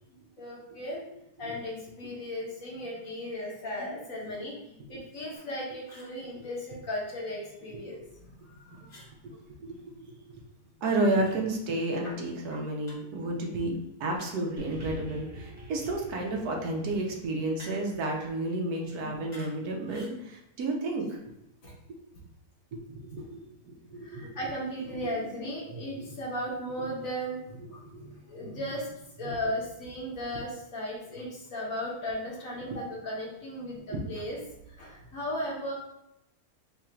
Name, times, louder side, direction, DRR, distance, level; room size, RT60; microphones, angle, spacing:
voice 1, 0.4-1.0 1.4-8.0 8.3-9.0 9.7-9.8 13.2-13.3 19.0-19.2 21.6-21.7 24.0-33.8 34.1-34.4 34.7-35.7, equal, 60° left, -3 dB, 1.4 m, -36 dB
sound 1, 5.3-5.5 5.8-6.2 8.9-9.1 11.1-11.4 12.9-13.1 14.2-14.6 17.6-18.0 19.3-19.6 19.8-20.2, equal, 30° left, 1.1 m, -51 dB
voice 2, 9.6-10.4 10.8-13.7 14.0-21.2 22.7-24.4 24.9-25.0 25.7-26.2 27.5-28.1 28.4-28.6 29.2-29.3 32.7-32.8 33.9-34.0, right 2 dB, 70° right, 0 dB, 1.2 m, -32 dB
sound 2, 14.6-19.1 19.9-20.0, equal, 20° right, 0.6 m, -47 dB
3.9 x 2.5 x 4.3 m, 0.84 s
omnidirectional pair, 1.7 m